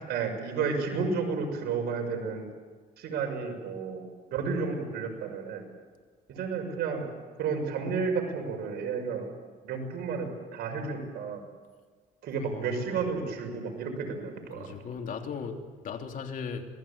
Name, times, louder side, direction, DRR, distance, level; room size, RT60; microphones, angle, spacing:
voice 1, 0.1-2.4 3.0-4.0 4.3-5.6 6.3-7.0 7.4-9.3 9.6-11.4 12.2-14.7, right 5 dB, 70° right, 3 dB, 6.3 m, -31 dB
voice 2, 12.5-13.2 13.7-13.8 14.1-16.7, left 6 dB, 55° left, 3 dB, 3.3 m, -39 dB
26.5 x 19.5 x 8.7 m, 1.5 s
cardioid pair, 110°, 17 cm